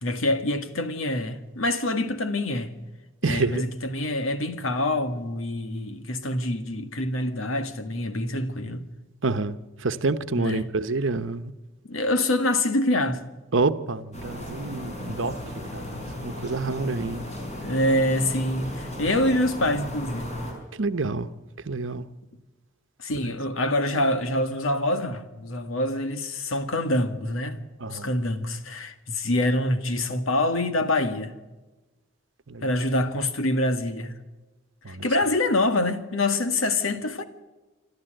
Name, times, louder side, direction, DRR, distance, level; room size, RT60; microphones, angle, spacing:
voice 1, 0.0-2.7 3.3-8.9 10.4-10.6 11.9-13.3 17.6-20.4 23.0-31.4 32.6-34.2 34.9-37.2, left 1 dB, 85° left, 1.9 m, -26 dB
voice 2, 3.2-3.6 9.2-11.5 13.5-17.2 17.6-17.7 20.7-22.1 23.2-23.4 27.8-28.1 32.5-32.8 34.8-35.1, right 3 dB, 70° right, 1.0 m, -28 dB
sound 1, 14.1-20.5, left 1 dB, 35° left, 5.9 m, -36 dB
27.0 x 13.0 x 7.9 m
head